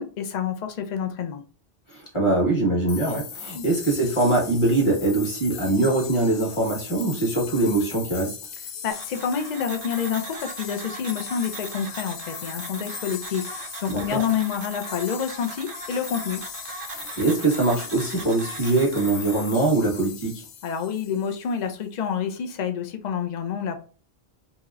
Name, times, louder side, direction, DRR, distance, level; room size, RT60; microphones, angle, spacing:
voice 1, 0.0-1.4 3.5-3.7 8.8-16.4 20.6-23.8, left 7 dB, 55° left, 7 dB, 0.5 m, -28 dB
voice 2, 1.9-8.4 13.9-14.2 16.9-20.4, right 2 dB, 30° left, -2 dB, 1.1 m, -23 dB
sound 1, 2.9-21.6, left 7 dB, 85° left, 0.9 m, -39 dB
sound 2, 8.9-19.5, right 4 dB, 60° right, 0.7 m, -40 dB
2.9 x 2.8 x 2.3 m, 0.38 s
omnidirectional pair, 1.1 m